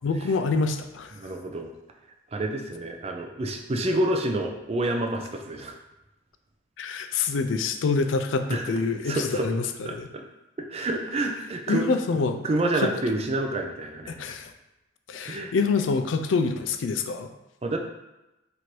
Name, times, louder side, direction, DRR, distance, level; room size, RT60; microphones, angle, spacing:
voice 1, 0.0-1.1 6.8-10.1 11.7-12.5 12.7-12.9 14.1-14.5 15.1-17.3, left 4 dB, 70° left, 7 dB, 0.4 m, -26 dB
voice 2, 1.1-1.7 2.3-5.8 8.5-8.7 9.1-9.5 9.8-10.2 10.6-11.9 12.4-14.3 15.2-15.5 17.6-17.8, right 1 dB, 30° right, 3 dB, 0.4 m, -28 dB
3.1 x 2.6 x 4.4 m, 0.96 s
head